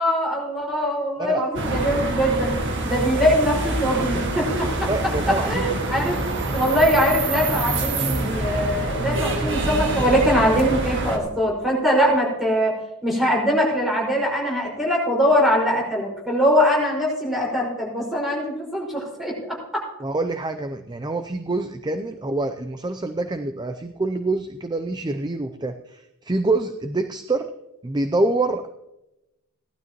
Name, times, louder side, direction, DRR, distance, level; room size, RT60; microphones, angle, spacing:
voice 1, 0.0-2.5 2.8-4.9 5.3-6.2 6.5-12.8 13.0-19.8, equal, ahead, -3 dB, 5.2 m, -22 dB
sound 1, 1.5-11.2, right 2 dB, 55° right, 1.9 m, -26 dB
voice 2, 4.9-5.6 20.0-27.5 27.8-28.7, right 2 dB, 20° right, 8 dB, 0.5 m, -26 dB
17.5 x 12.5 x 3.0 m, 0.93 s
head